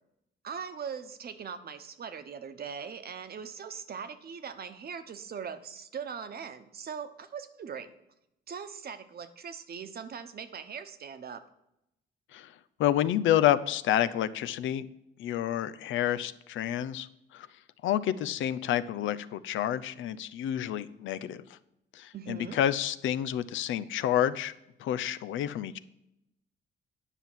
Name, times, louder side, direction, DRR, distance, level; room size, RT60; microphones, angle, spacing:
voice 1, 0.4-7.9 8.5-11.4 22.1-22.6, right 7 dB, 50° right, 10 dB, 1.1 m, -40 dB
voice 2, 12.8-14.8 15.2-17.5 17.8-21.6 21.9-24.5 24.8-25.8, left 11 dB, 80° left, 13 dB, 0.6 m, -29 dB
10.0 x 5.6 x 7.4 m, 0.83 s
cardioid pair, 90°, 20 cm